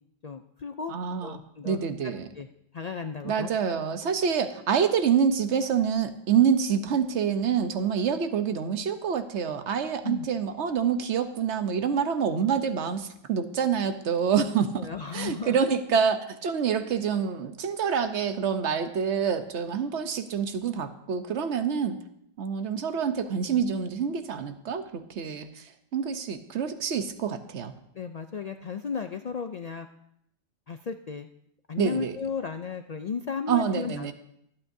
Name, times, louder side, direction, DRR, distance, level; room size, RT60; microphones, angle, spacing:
voice 1, 0.2-0.9 1.2-2.5 2.7-3.5 10.0-10.3 14.8-15.6 27.9-29.9 30.7-31.3 31.7-34.1, left 6 dB, 55° left, 7 dB, 0.4 m, -35 dB
voice 2, 0.9-1.4 1.6-2.3 3.2-14.9 15.1-22.0 22.4-25.6 25.9-27.7 31.8-32.2 33.5-34.1, right 7 dB, 75° right, 9 dB, 1.1 m, -27 dB
24.0 x 8.8 x 2.7 m, 0.76 s
omnidirectional pair, 1.2 m